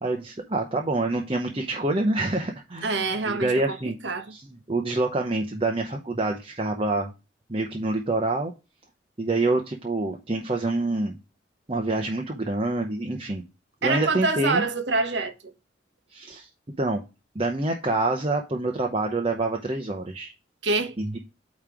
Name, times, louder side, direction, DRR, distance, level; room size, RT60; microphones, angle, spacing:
voice 1, 0.0-4.0 4.3-7.1 7.5-8.5 9.2-11.2 11.7-13.4 13.8-14.6 16.1-16.5 16.8-17.0 17.3-20.3 21.0-21.2, right 2 dB, 30° right, 0.8 m, -26 dB
voice 2, 2.8-3.8 4.0-4.3 13.8-15.5 20.6-21.0, right 3 dB, 75° right, 1.1 m, -26 dB
8.9 x 3.2 x 4.7 m
head